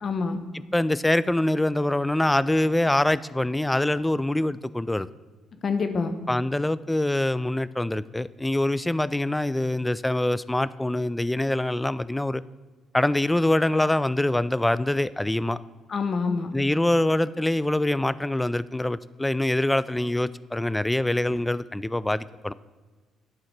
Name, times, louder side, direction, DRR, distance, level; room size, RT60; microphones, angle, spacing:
voice 1, 0.0-0.4 5.6-6.2 15.9-16.5, left 4 dB, 45° left, 9 dB, 1.0 m, -26 dB
voice 2, 0.5-5.1 6.3-12.4 12.9-15.6 16.5-22.5, left 1 dB, 10° left, 17 dB, 0.3 m, -24 dB
11.0 x 3.8 x 5.9 m, 1.4 s
cardioid pair, 80°, 0 cm